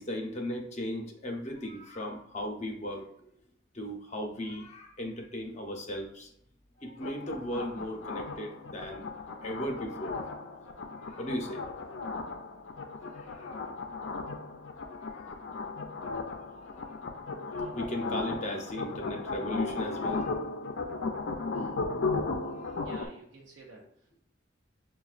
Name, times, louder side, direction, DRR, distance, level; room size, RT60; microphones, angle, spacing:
voice 1, 0.0-3.3 3.7-6.3 6.8-9.0 9.4-10.1 10.8-11.6 13.0-13.7 14.9-15.4 16.4-17.0 17.6-20.4 21.6-21.7 22.5-22.9, left 1 dB, 35° left, 1 dB, 0.7 m, -37 dB
sound 1, 7.0-23.1, left 3 dB, 80° left, 0.5 m, -36 dB
voice 2, 22.8-24.2, right 1 dB, 70° right, -3 dB, 0.7 m, -50 dB
6.7 x 2.3 x 2.4 m, 0.70 s
head